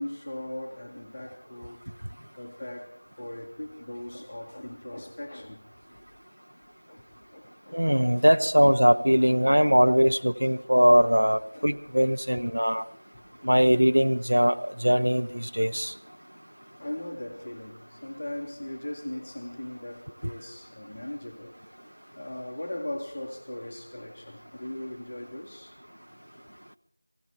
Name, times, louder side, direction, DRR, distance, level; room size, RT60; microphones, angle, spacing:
voice 1, 0.0-1.9 2.4-5.6 6.9-7.0 7.3-8.3 9.2-10.0 10.4-10.8 11.5-11.7 12.4-12.5 13.1-13.2 16.8-21.6 22.1-25.8, left 1 dB, 15° left, 0.7 m, -39 dB
voice 2, 7.7-12.9 13.4-15.9, equal, 55° right, 0.6 m, -21 dB
18.0 x 15.5 x 4.4 m
figure-of-eight pair, 175°, 0 cm